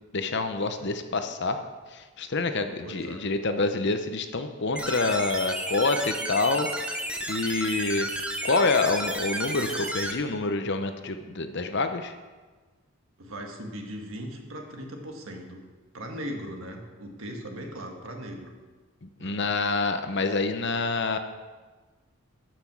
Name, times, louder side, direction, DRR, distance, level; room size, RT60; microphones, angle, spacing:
voice 1, 0.1-1.6 1.9-6.7 7.3-8.1 8.4-12.1 19.0-21.2, left 3 dB, 50° left, 8 dB, 0.8 m, -27 dB
voice 2, 2.8-3.3 13.2-15.6 15.9-18.5 19.2-19.5, equal, 65° right, 2 dB, 1.6 m, -38 dB
sound 1, 4.8-10.1, right 1 dB, 5° right, 0.7 m, -32 dB
13.0 x 6.1 x 6.0 m, 1.3 s
head